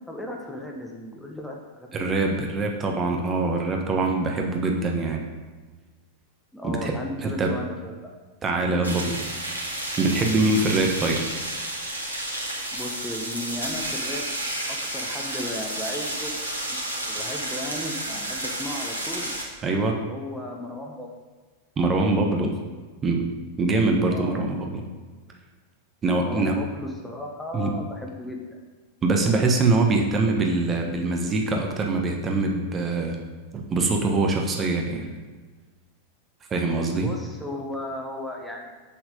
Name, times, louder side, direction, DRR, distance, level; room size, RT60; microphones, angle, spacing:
voice 1, 0.1-2.1 6.5-7.9 12.7-14.3 14.7-16.3 17.1-17.9 18.3-19.3 20.1-21.1 24.1-24.5 26.2-28.6 36.9-38.7, left 1 dB, 5° left, 0 dB, 1.2 m, -35 dB
voice 2, 1.9-5.2 6.6-7.6 8.4-9.2 10.0-11.2 18.1-18.3 19.6-20.0 21.8-22.5 23.0-23.2 23.6-24.8 26.0-26.5 27.5-27.7 29.0-33.2 33.5-35.1 36.5-37.1, right 3 dB, 25° right, 2 dB, 1.2 m, -23 dB
sound 1, 8.8-19.4, right 1 dB, 90° left, 1.9 m, -31 dB
7.8 x 7.1 x 5.2 m, 1.4 s
figure-of-eight pair, 90°, 0 cm